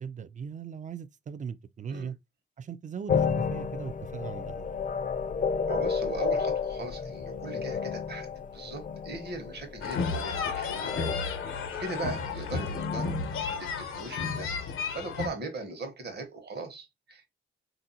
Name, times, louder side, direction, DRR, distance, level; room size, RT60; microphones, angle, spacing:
voice 1, 0.0-2.2 2.6-4.7, right 7 dB, 35° right, 0.4 m, -39 dB
sound 1, 3.1-14.5, left 6 dB, 40° left, 0.4 m, -32 dB
voice 2, 5.7-8.3 8.5-11.1 11.5-13.2 13.6-14.5 14.9-17.3, right 3 dB, 50° right, 1.1 m, -39 dB
sound 2, 9.8-15.3, left 5 dB, 80° left, 0.7 m, -33 dB
3.5 x 2.5 x 2.7 m
supercardioid pair, 50°, 21 cm